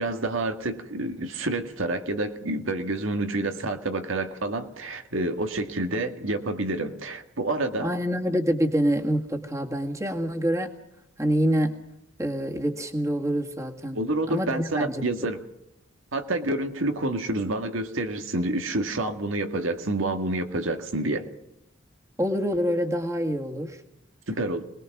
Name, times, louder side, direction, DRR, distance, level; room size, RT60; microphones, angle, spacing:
voice 1, 0.0-7.9 14.0-15.4 16.1-21.3 24.3-24.6, right 2 dB, 85° right, 6 dB, 1.8 m, -28 dB
voice 2, 7.8-10.7 11.2-11.8 12.2-15.1 22.2-23.8, equal, 15° right, 3 dB, 1.9 m, -26 dB
26.5 x 20.0 x 6.1 m, 0.80 s
head